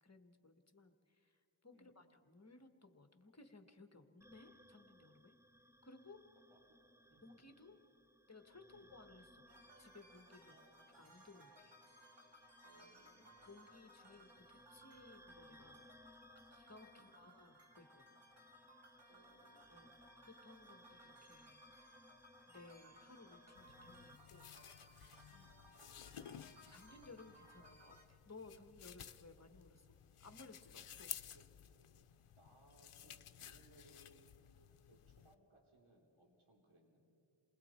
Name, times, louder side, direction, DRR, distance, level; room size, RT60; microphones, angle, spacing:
voice 1, 0.0-5.3 5.8-6.3 7.2-7.8 8.3-9.4 9.8-10.6 11.0-11.7 13.5-16.0 16.5-18.2 19.7-21.6 22.5-24.5 24.9-25.2 26.7-29.9 30.2-31.1, left 3 dB, 30° left, 7 dB, 1.5 m, -60 dB
voice 2, 1.7-2.1 6.5-6.6 7.1-7.3 8.7-8.9 10.5-11.0 12.6-13.6 14.0-14.2 17.0-17.2 19.1-19.7 20.0-20.1 25.3-25.8 30.4-30.5 31.3-31.4 32.4-34.6 34.9-37.0, equal, 75° right, 0 dB, 3.1 m, -68 dB
sound 1, 4.2-24.2, equal, 5° right, 0.6 m, -65 dB
sound 2, 9.5-28.1, equal, 55° right, 2.3 m, -63 dB
sound 3, 23.6-35.3, left 9 dB, 80° left, 0.7 m, -55 dB
29.0 x 20.5 x 4.5 m, 2.5 s
wide cardioid pair, 50°, 50 cm